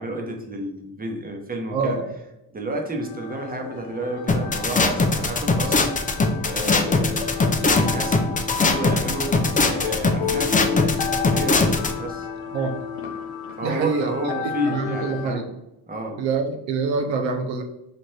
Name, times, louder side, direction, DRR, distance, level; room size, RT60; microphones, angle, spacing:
voice 1, 0.0-2.0 2.5-5.9 6.4-7.3 7.5-8.3 8.6-9.4 9.6-10.9 11.2-12.3 13.6-15.5 15.9-16.2, right 1 dB, 20° right, 2 dB, 0.9 m, -30 dB
voice 2, 1.7-2.1 12.5-12.8 13.6-14.1 14.4-15.5 16.2-17.6, right 4 dB, 80° right, 5 dB, 0.6 m, -26 dB
sound 1, 3.0-15.3, left 6 dB, 80° left, 0.7 m, -32 dB
sound 2, 4.3-11.9, left 3 dB, 20° left, 0.4 m, -20 dB
4.2 x 2.5 x 3.2 m, 0.86 s
cardioid pair, 70°, 46 cm